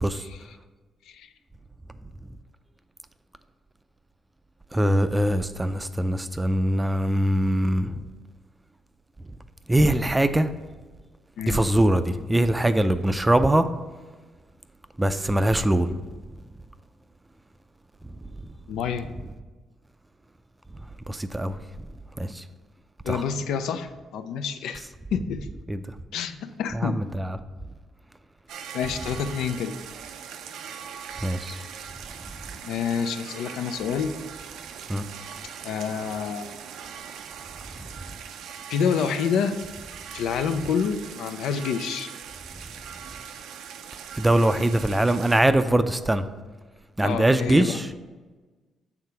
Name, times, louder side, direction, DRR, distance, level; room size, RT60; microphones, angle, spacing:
voice 1, 0.1-0.6 1.1-1.3 11.4-11.6 18.7-19.1 23.0-24.9 25.1-25.5 26.1-27.0 28.7-29.8 32.6-34.1 35.6-36.5 38.7-39.6 40.1-42.1 47.0-47.8, left 6 dB, 85° left, 9 dB, 0.4 m, -28 dB
voice 2, 4.7-8.0 9.7-10.5 11.5-13.7 15.0-15.9 21.1-21.6 22.2-22.4 23.1-23.3 25.7-25.8 26.7-27.4 29.0-29.2 31.2-31.6 34.9-35.0 44.2-46.2 47.0-47.9, right 1 dB, 15° right, 10 dB, 0.4 m, -22 dB
sound 1, 28.5-45.4, right 8 dB, 85° right, 0.4 m, -41 dB
6.7 x 3.5 x 5.6 m, 1.3 s
cardioid pair, 90°, 0 cm